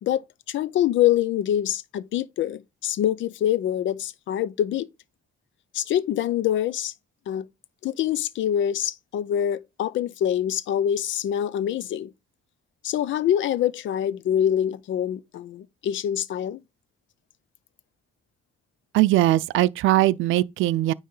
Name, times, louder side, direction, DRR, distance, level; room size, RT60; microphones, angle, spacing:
voice 1, 0.0-4.9 5.7-6.9 7.3-7.5 7.8-12.1 12.8-16.6, left 10 dB, 70° left, 0.6 m, -25 dB
voice 2, 18.9-20.9, right 16 dB, 85° right, 0.4 m, -20 dB
9.4 x 3.2 x 3.8 m
cardioid pair, 90°, 20 cm